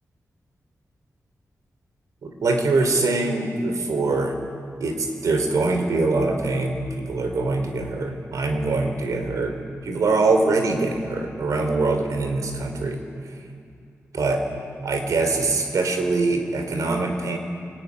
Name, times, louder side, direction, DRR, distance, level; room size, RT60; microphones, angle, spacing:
voice 1, 2.2-4.4 4.8-9.5 9.8-13.0 14.1-14.4 14.8-17.4, right 3 dB, 80° right, 5 dB, 3.3 m, -23 dB
22.5 x 18.5 x 9.7 m, 2.4 s
wide cardioid pair, 155°, 6 cm